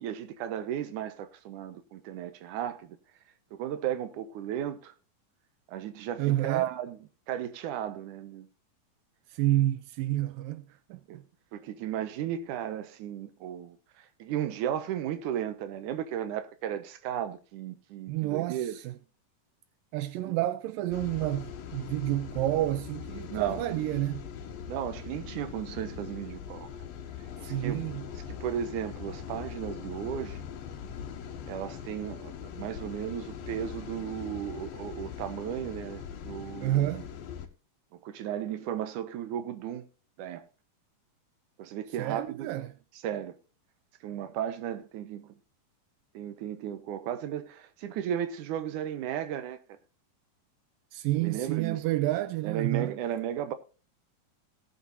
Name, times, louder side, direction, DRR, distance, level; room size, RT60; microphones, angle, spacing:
voice 1, 0.0-3.0 3.5-4.9 5.7-8.5 11.1-11.2 11.5-13.8 14.2-18.8 20.3-20.4 23.3-23.6 24.7-26.7 27.4-27.9 28.4-30.4 31.5-36.9 37.9-39.9 40.2-40.4 41.6-42.5 43.0-43.4 44.0-45.3 46.1-49.6 51.2-51.8 52.4-53.5, right 10 dB, 70° right, 2.5 m, -35 dB
voice 2, 6.2-6.7 9.3-10.6 10.9-11.0 18.1-19.0 19.9-24.3 27.4-28.1 36.6-37.1 42.0-42.7 50.9-53.0, right 15 dB, 85° right, 2.3 m, -29 dB
sound 1, 20.9-37.5, left 8 dB, 90° left, 3.1 m, -41 dB
18.5 x 8.5 x 2.7 m
omnidirectional pair, 4.0 m